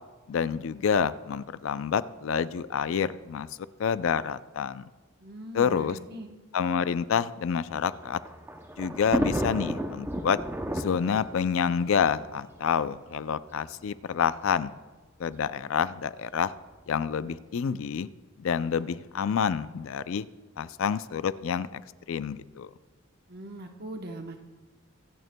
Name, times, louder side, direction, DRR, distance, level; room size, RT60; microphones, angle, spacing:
voice 1, 0.3-3.5 3.8-4.9 5.5-6.0 6.5-8.2 8.8-10.4 10.7-14.7 15.2-16.5 16.9-18.1 18.4-20.3 20.6-21.8 22.1-22.7, left 7 dB, 70° left, 15 dB, 0.4 m, -28 dB
voice 2, 5.2-6.3 23.3-24.4, right 1 dB, 45° right, 3 dB, 0.9 m, -40 dB
Thunder, 7.7-13.0 13.8-13.9 14.2-14.3 15.3-15.6, right 1 dB, 10° right, 0.6 m, -33 dB
24.5 x 9.3 x 2.2 m, 1.3 s
head